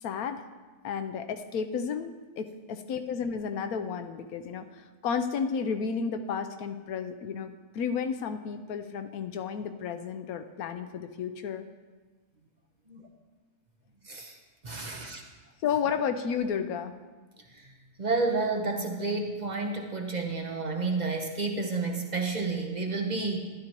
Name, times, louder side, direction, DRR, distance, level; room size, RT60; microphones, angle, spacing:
voice 1, 0.0-0.4 0.8-11.7 15.6-16.9, left 6 dB, 75° left, 8 dB, 1.1 m, -32 dB
voice 2, 14.0-14.4 14.6-15.2 17.5-17.7 18.0-23.4, right 3 dB, 35° right, 3 dB, 0.8 m, -30 dB
12.5 x 11.0 x 3.0 m, 1.3 s
omnidirectional pair, 1.6 m